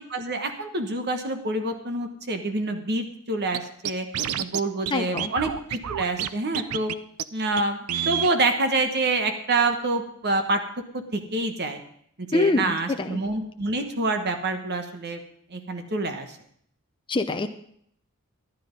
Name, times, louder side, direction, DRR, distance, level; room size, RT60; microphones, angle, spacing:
voice 1, 0.1-4.0 4.4-6.9 7.3-10.6 10.9-11.8 12.2-15.2 15.5-16.4, right 2 dB, 50° right, 6 dB, 1.2 m, -27 dB
Scratching (performance technique), 3.5-3.6 3.9-4.6 4.9-5.0 5.2-6.3 6.5-6.9 7.2-7.3 7.6-7.7 7.9-8.3, right 9 dB, 85° right, 0.5 m, -28 dB
voice 2, 4.9-5.3 12.3-13.2 17.1-17.5, left 3 dB, 20° left, 5 dB, 0.6 m, -25 dB
12.0 x 10.5 x 5.2 m, 0.66 s
head